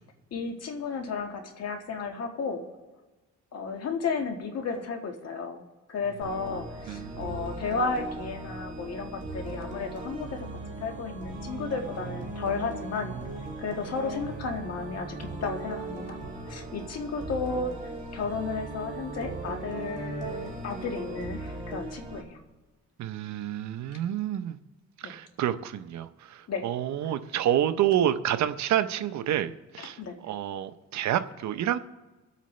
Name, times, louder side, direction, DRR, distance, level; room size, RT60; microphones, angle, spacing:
voice 1, 0.3-2.6 3.5-10.5 10.8-13.1 13.6-16.2 16.5-17.7 18.1-22.4 25.0-25.2 26.5-26.7 27.0-27.1 29.8-30.2, left 4 dB, 60° left, 4 dB, 1.6 m, -33 dB
sound 1, 6.2-22.2, right 2 dB, 25° right, 2.7 m, -38 dB
voice 2, 6.9-7.3 23.0-24.6 25.0-30.0 30.3-31.8, right 11 dB, 70° right, 11 dB, 0.7 m, -28 dB
24.0 x 8.2 x 3.2 m, 1.2 s
cardioid pair, 115°, 29 cm